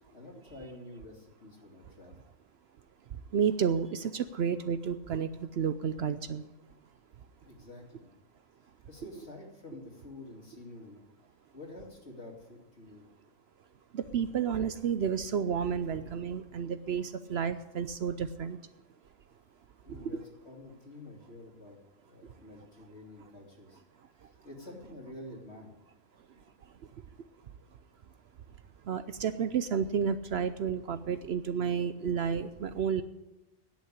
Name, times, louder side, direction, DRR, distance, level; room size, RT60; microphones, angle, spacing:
voice 1, 0.1-2.2 7.4-8.1 8.9-11.0 11.5-13.1 19.8-21.8 22.0-23.8 24.2-25.7, left 1 dB, 60° left, 0 dB, 2.9 m, -48 dB
voice 2, 3.3-6.4 13.9-18.6 28.9-33.0, right 7 dB, 60° right, 12 dB, 0.8 m, -31 dB
10.5 x 8.6 x 9.9 m, 1.0 s
omnidirectional pair, 1.3 m